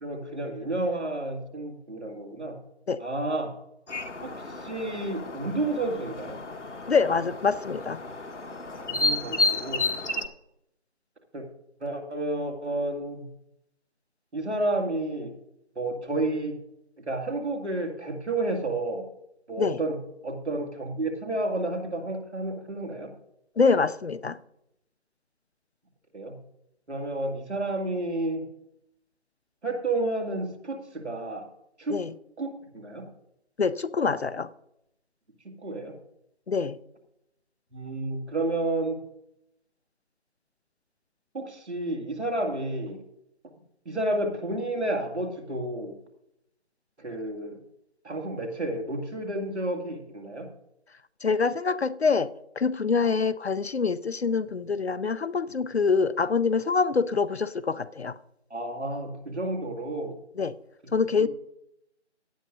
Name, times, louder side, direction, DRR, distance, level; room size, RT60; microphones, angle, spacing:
voice 1, 0.0-2.6 3.0-3.5 4.2-6.4 8.9-9.8 11.3-11.4 11.8-13.3 14.3-15.3 15.8-16.5 17.1-19.1 19.5-20.0 20.2-23.1 26.1-26.4 26.9-28.4 29.6-31.4 31.8-32.0 32.4-33.1 35.6-36.0 37.7-39.0 41.3-43.0 43.9-45.9 47.0-47.6 48.0-50.5 58.5-60.1 61.2-61.3, right 2 dB, 75° right, 4 dB, 2.3 m, -31 dB
sound 1, 3.9-10.3, left 3 dB, 85° left, 1.5 m, -31 dB
voice 2, 6.9-8.0 19.6-19.8 23.6-24.4 31.9-32.1 33.6-34.5 36.5-36.8 51.2-52.3 52.6-58.1 60.4-60.5 60.9-61.3, left 5 dB, 65° left, 14 dB, 0.5 m, -25 dB
17.0 x 10.5 x 2.6 m, 0.82 s
figure-of-eight pair, 170°, 35 cm